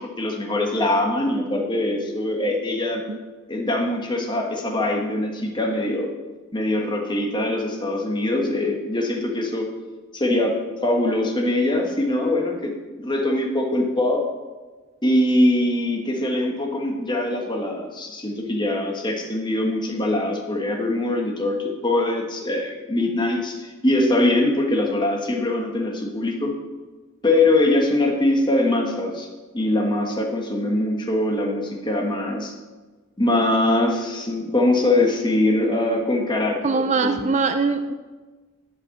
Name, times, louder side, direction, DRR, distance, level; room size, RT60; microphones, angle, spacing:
voice 1, 0.0-3.0 3.5-6.1 6.5-9.7 10.1-14.2 15.0-26.6 27.2-29.3 29.5-32.5 33.2-37.3, left 1 dB, 20° left, 1 dB, 1.4 m, -22 dB
voice 2, 36.6-37.9, right 4 dB, 35° right, 8 dB, 0.4 m, -22 dB
11.0 x 5.5 x 5.8 m, 1.3 s
head